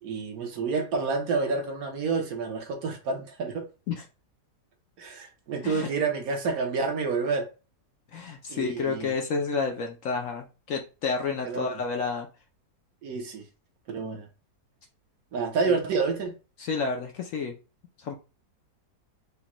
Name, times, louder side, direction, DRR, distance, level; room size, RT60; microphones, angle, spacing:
voice 1, 0.0-3.7 5.0-7.5 8.5-9.1 11.4-11.8 13.0-13.5 13.9-14.3 15.3-16.3, right 4 dB, 65° right, 1.3 m, -29 dB
voice 2, 8.1-12.3 15.7-15.8 16.6-17.5 18.0-18.2, left 5 dB, 65° left, 0.9 m, -30 dB
5.0 x 2.2 x 2.9 m
omnidirectional pair, 1.8 m